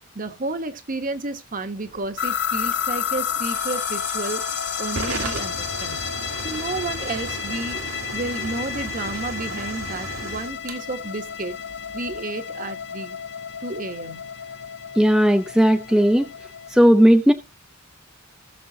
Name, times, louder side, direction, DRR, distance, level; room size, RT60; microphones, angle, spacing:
voice 1, 0.1-4.4 4.8-6.0 6.4-7.8 8.1-11.6 11.9-13.2 13.6-14.3, right 3 dB, 40° right, 1.1 m, -31 dB
Hiss / Fire / Tick, 1.8-12.2, right 3 dB, 80° right, 1.8 m, -35 dB
sound 1, 2.2-16.8, left 9 dB, 55° left, 0.9 m, -31 dB
voice 2, 15.0-16.3 16.7-17.3, equal, 5° right, 0.5 m, -16 dB
18.5 x 6.7 x 2.8 m
head